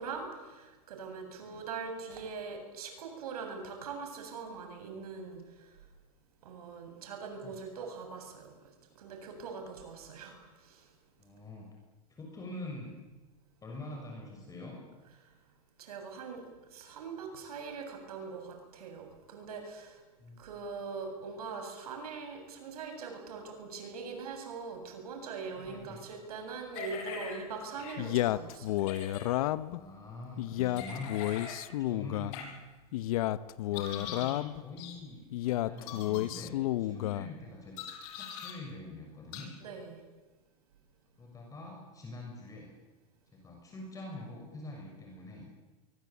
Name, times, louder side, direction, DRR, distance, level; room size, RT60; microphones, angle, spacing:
voice 1, 0.0-5.7 6.4-8.5 9.0-10.8 15.8-16.4 16.7-20.0 20.4-28.8 30.9-31.0 39.6-40.0, right 5 dB, 85° right, 5 dB, 7.8 m, -42 dB
voice 2, 11.2-11.7 12.1-12.9 13.6-14.8 20.2-20.4 25.5-26.0 29.7-31.2 31.8-32.6 33.6-37.8 38.1-39.5 41.2-42.7 43.3-45.4, left 2 dB, 20° left, 0 dB, 6.6 m, -45 dB
sound 1, 26.7-27.4 27.8-28.0 28.8-29.2 30.8-31.6 32.3-32.4 33.7-34.4 34.8-35.0 35.8-36.2 37.8-38.5 39.3-39.4, left 7 dB, 55° left, 6.8 m, -42 dB
Male speech man speaking, 28.0-29.8 30.4-32.4 32.9-34.6 35.3-37.3, left 15 dB, 70° left, 1.1 m, -31 dB
25.0 x 24.0 x 8.6 m, 1.2 s
supercardioid pair, 130°, 19 cm